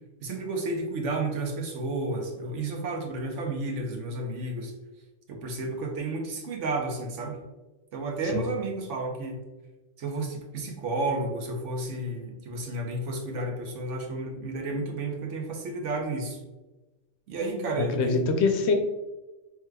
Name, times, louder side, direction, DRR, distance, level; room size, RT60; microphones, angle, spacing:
voice 1, 0.2-4.7 5.3-7.4 7.9-9.4 10.0-16.4 17.3-18.2, right 2 dB, 85° right, 2 dB, 1.1 m, -32 dB
voice 2, 17.5-18.7, left 4 dB, 70° left, 5 dB, 0.8 m, -25 dB
4.7 x 3.4 x 2.2 m, 1.1 s
omnidirectional pair, 1.2 m